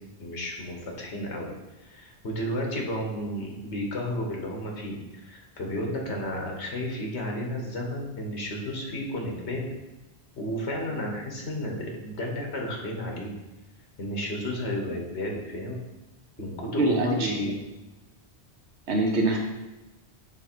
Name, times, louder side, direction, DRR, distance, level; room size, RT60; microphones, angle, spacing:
voice 1, 0.2-1.5 1.8-9.6 10.4-13.3 14.0-15.8 16.4-17.6, left 1 dB, 85° left, 0 dB, 1.5 m, -32 dB
voice 2, 16.8-17.3 18.9-19.4, right 2 dB, 85° right, 2 dB, 1.1 m, -23 dB
7.0 x 3.3 x 4.5 m, 1.0 s
omnidirectional pair, 1.1 m